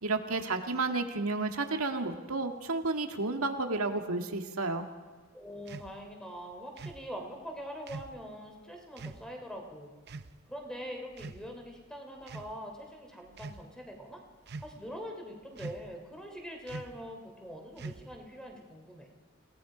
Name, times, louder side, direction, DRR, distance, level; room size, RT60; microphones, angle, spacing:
voice 1, 0.0-4.9, right 3 dB, 85° right, 5 dB, 1.9 m, -31 dB
voice 2, 5.3-9.9 10.5-14.2 14.6-19.1, equal, 5° left, 2 dB, 3.1 m, -43 dB
sound 1, 5.7-5.9 6.8-7.0 7.9-8.2 9.0-9.2 10.1-10.3 11.1-11.7 12.2-12.5 13.3-13.6 14.5-14.9 15.6-16.0 16.7-17.0 17.8-18.2, right 3 dB, 50° right, 0.7 m, -43 dB
29.0 x 18.0 x 5.1 m, 1.4 s
head